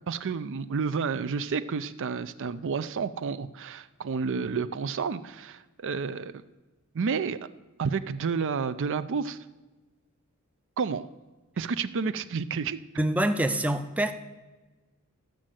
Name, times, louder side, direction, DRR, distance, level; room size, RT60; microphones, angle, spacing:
voice 1, 0.1-6.4 6.9-7.5 7.8-9.4 10.8-11.1 11.6-12.8, right 5 dB, 60° right, 13 dB, 0.5 m, -30 dB
voice 2, 13.0-14.1, right 1 dB, 5° right, 8 dB, 0.5 m, -25 dB
13.0 x 6.4 x 7.5 m, 1.2 s
head